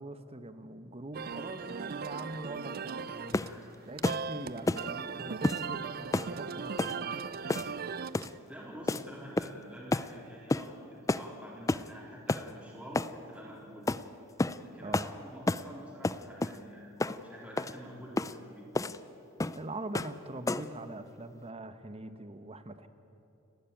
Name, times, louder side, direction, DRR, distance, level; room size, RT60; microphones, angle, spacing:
voice 1, 0.0-3.0 3.9-7.5 7.8-8.2 14.7-15.1 19.5-22.9, right 2 dB, 30° right, 10 dB, 1.0 m, -43 dB
sound 1, 1.1-8.4, right 6 dB, 45° right, 0.5 m, -38 dB
voice 2, 3.1-3.7 8.5-13.9 14.6-18.7, equal, 5° right, -6 dB, 3.9 m, -48 dB
sound 2, 3.3-3.6 4.0-4.2 4.7-4.9 5.4-5.6 6.1-6.3 6.8-7.0 7.5-7.8 8.1-8.4 8.9-9.0 9.4-9.6 9.9-10.1 10.5-10.7 11.1-11.3 11.7-11.9 12.3-12.5 12.9-13.1 13.9-14.0 14.4-14.6 14.9-15.1 15.5-15.7 16.0-16.6 17.0-17.2 17.6-17.7 18.2-18.3 18.7-19.0 19.4-19.6 19.9-20.2 20.5-20.7, left 2 dB, 15° left, 0.4 m, -30 dB
30.0 x 12.0 x 9.0 m, 2.9 s
head